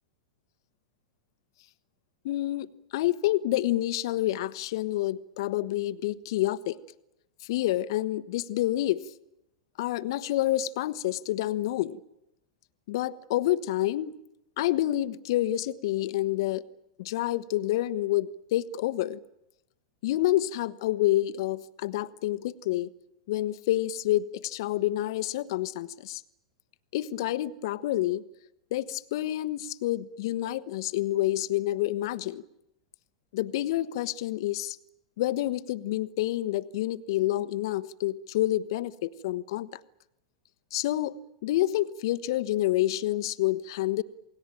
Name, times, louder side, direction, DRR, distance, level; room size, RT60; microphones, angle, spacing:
voice 1, 2.2-6.8 7.4-9.0 9.8-12.0 12.9-14.2 14.6-16.6 17.0-19.2 20.0-22.9 23.3-26.2 26.9-28.2 28.7-32.4 33.3-34.8 35.2-39.8 40.7-44.0, left 14 dB, 60° left, 15 dB, 1.1 m, -28 dB
28.5 x 19.5 x 9.0 m, 0.89 s
figure-of-eight pair, 95°, 3 cm